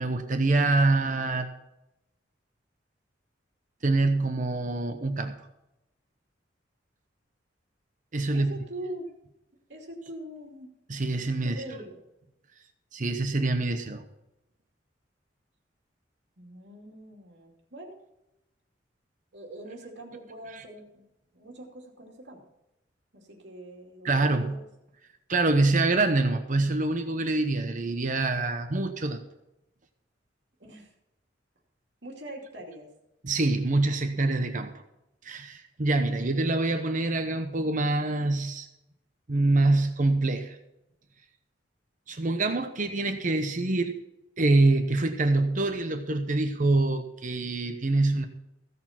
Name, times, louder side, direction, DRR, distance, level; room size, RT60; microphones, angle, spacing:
voice 1, 0.0-1.5 3.8-5.3 8.1-8.5 10.9-11.6 12.9-14.0 24.0-24.6 25.3-29.2 33.2-34.7 35.2-38.7 39.3-40.6 42.1-43.9 44.4-48.3, right 2 dB, 45° right, 7 dB, 0.9 m, -25 dB
voice 2, 8.3-9.1 9.7-10.7 11.4-12.0 16.4-18.0 19.3-21.0 21.3-22.4 23.1-24.7 30.6-30.9 32.0-32.9, right 1 dB, 70° right, 1 dB, 2.6 m, -42 dB
15.5 x 6.8 x 5.9 m, 0.89 s
head